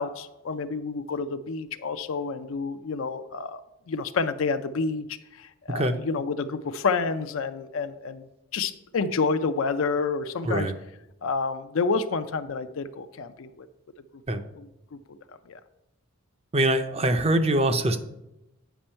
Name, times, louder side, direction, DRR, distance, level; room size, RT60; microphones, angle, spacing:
voice 1, 0.0-3.6 3.9-5.1 5.4-8.3 8.5-10.7 11.2-13.7 14.5-15.2 15.5-15.6, left 4 dB, 70° left, 9 dB, 0.4 m, -29 dB
voice 2, 10.4-10.8 14.3-14.4 16.5-18.0, right 1 dB, 30° right, 9 dB, 0.6 m, -23 dB
9.1 x 5.3 x 4.3 m, 0.90 s
head